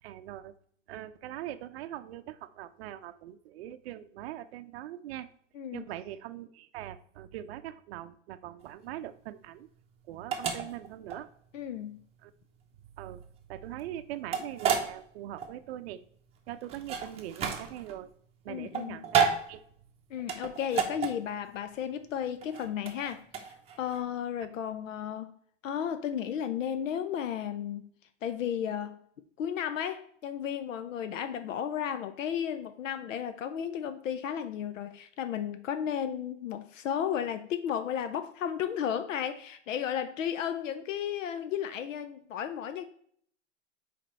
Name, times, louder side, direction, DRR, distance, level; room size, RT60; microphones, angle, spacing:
voice 1, 0.0-0.5 0.9-5.3 5.7-9.7 10.1-11.3 12.2-12.3 13.0-13.2 13.5-16.0 16.5-18.1 18.4-19.6, right 12 dB, 55° right, 11 dB, 0.5 m, -42 dB
voice 2, 5.5-5.9 11.5-12.0 18.5-19.1 20.1-23.2 23.8-25.3 25.6-27.9 28.2-29.0 29.4-42.8, left 9 dB, 80° left, 10 dB, 0.7 m, -34 dB
sound 1, 8.6-24.0, right 7 dB, 15° right, 0.8 m, -33 dB
5.2 x 4.4 x 4.2 m, 0.63 s
hypercardioid pair, 140°, 38 cm